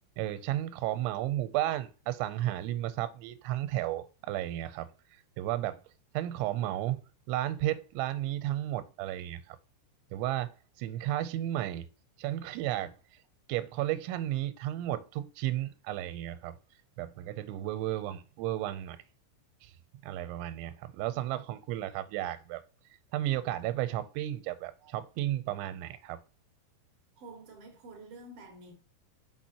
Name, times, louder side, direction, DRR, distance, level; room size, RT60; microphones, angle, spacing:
voice 1, 0.2-4.9 5.4-5.8 6.1-7.0 7.3-9.6 10.1-11.9 12.2-13.0 13.5-16.6 17.0-19.0 19.6-19.7 20.0-22.6 23.1-26.2, right 14 dB, 85° right, 3.0 m, -33 dB
voice 2, 27.2-28.7, right 2 dB, 70° right, 1.4 m, -49 dB
6.2 x 5.9 x 2.8 m
omnidirectional pair, 5.3 m